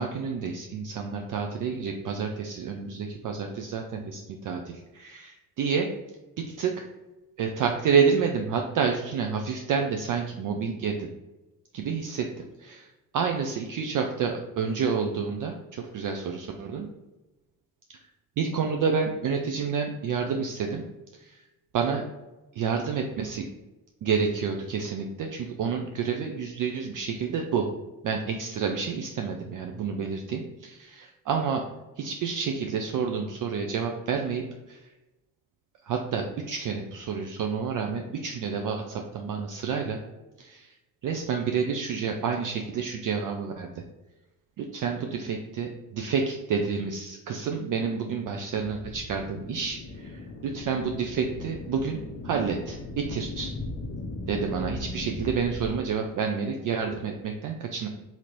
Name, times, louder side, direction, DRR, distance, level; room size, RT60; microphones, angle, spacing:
voice 1, 0.0-5.9 6.4-6.8 7.4-11.1 11.7-16.9 17.9-18.1 18.4-20.8 21.2-21.4 21.7-22.0 22.5-23.5 24.0-27.7 28.0-31.7 32.0-34.8 35.8-40.0 40.4-40.7 41.0-43.7 44.6-53.5 54.3-57.9, right 6 dB, 45° right, 3 dB, 0.5 m, -29 dB
sound 1, 48.5-55.8, left 2 dB, 30° left, 0.6 m, -38 dB
2.9 x 2.8 x 3.9 m, 1.1 s
hypercardioid pair, 45°, 46 cm